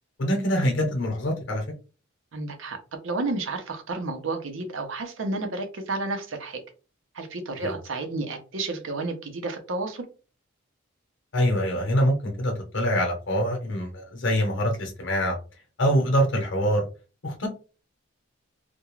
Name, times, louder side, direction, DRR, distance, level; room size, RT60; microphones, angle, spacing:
voice 1, 0.2-1.6 7.6-7.7 11.3-15.4 15.8-16.8 17.2-17.5, equal, 65° left, 2 dB, 0.7 m, -24 dB
voice 2, 2.3-2.8 3.0-6.6 7.1-10.0, right 3 dB, 80° right, 5 dB, 0.6 m, -31 dB
2.3 x 2.2 x 3.0 m, 0.34 s
head